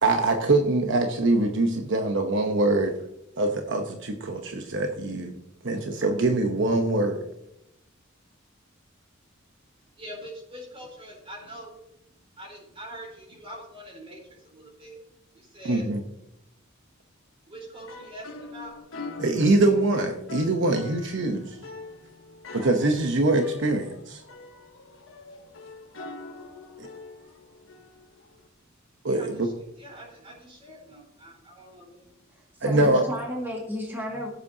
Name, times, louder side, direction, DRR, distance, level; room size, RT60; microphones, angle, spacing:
voice 1, 0.0-2.9 3.4-5.4 5.6-7.2 15.6-16.0 19.2-21.6 22.5-24.2 26.8-26.9 29.0-29.5 32.6-33.0, right 2 dB, 65° right, 4 dB, 1.0 m, -23 dB
voice 2, 10.0-11.8 12.4-15.0 15.3-15.9 17.5-18.8 29.0-29.5 29.8-32.2 32.9-33.0, equal, 30° right, -1 dB, 4.2 m, -43 dB
sound 1, 17.7-28.4, left 3 dB, 85° left, 1.3 m, -44 dB
voice 3, 32.3-34.3, left 1 dB, 10° right, -3 dB, 2.2 m, -33 dB
15.5 x 8.1 x 2.8 m, 0.82 s
head